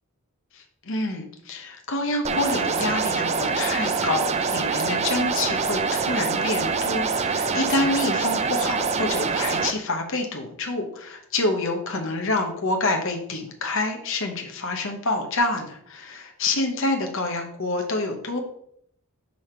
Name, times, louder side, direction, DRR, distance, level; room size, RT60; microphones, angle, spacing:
voice 1, 0.5-18.4, left 2 dB, 60° left, 3 dB, 1.1 m, -27 dB
sound 1, 2.2-9.7, right 5 dB, 30° right, 0.4 m, -25 dB
5.6 x 4.9 x 4.5 m, 0.69 s
head